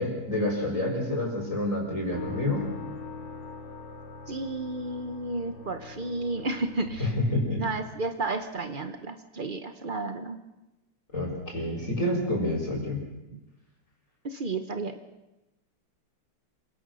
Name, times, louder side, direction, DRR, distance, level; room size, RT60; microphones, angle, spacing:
voice 1, 0.0-2.6 7.0-7.6 11.1-13.0, left 1 dB, 35° left, -1 dB, 5.4 m, -28 dB
sound 1, 2.1-8.0, left 3 dB, 85° left, 4.8 m, -42 dB
voice 2, 4.3-7.1 7.6-10.4 14.2-14.9, right 2 dB, 75° right, 8 dB, 0.4 m, -32 dB
27.0 x 18.0 x 6.4 m, 0.99 s
omnidirectional pair, 2.4 m